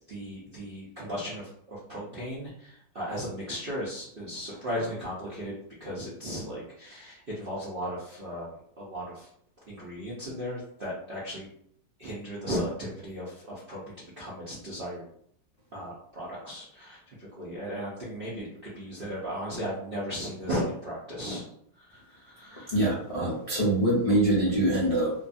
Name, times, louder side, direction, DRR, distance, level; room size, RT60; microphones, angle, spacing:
voice 1, 0.1-5.5 5.8-8.5 8.8-9.3 9.7-11.5 12.0-13.8 14.2-15.0 15.7-21.4 21.9-22.8, equal, 65° right, -7 dB, 0.5 m, -36 dB
voice 2, 22.7-25.1, right 1 dB, 65° left, -9 dB, 0.3 m, -24 dB
2.7 x 2.4 x 2.5 m, 0.67 s
omnidirectional pair, 1.9 m